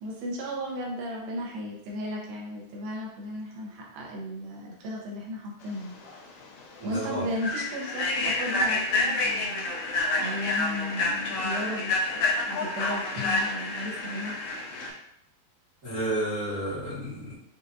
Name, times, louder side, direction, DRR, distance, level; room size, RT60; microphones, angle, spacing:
voice 1, 0.0-5.9 6.8-14.4, equal, 90° right, -2 dB, 2.7 m, -35 dB
Human voice / Train, 6.0-6.2 6.6-6.8 7.3-14.9, left 2 dB, 85° left, 1.5 m, -28 dB
voice 2, 6.8-7.2 15.8-17.3, right 1 dB, 45° right, -11 dB, 1.1 m, -31 dB
6.8 x 2.5 x 2.7 m, 0.76 s
omnidirectional pair, 4.1 m